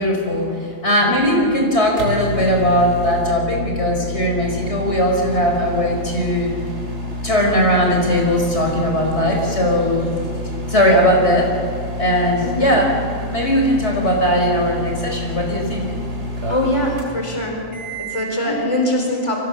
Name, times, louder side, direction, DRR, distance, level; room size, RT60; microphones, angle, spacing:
voice 1, 0.0-6.5 7.2-10.0 10.7-11.5 12.0-12.9 13.3-15.8 18.4-18.5, equal, 60° left, 1 dB, 4.8 m, -18 dB
voice 2, 1.3-1.6 12.4-12.8 16.5-17.6 18.0-19.4, left 1 dB, 25° left, 1 dB, 4.4 m, -22 dB
sound 1, 1.4-18.4, left 1 dB, 60° right, 3.6 m, -29 dB
28.5 x 24.0 x 6.9 m, 2.4 s
omnidirectional pair, 1.3 m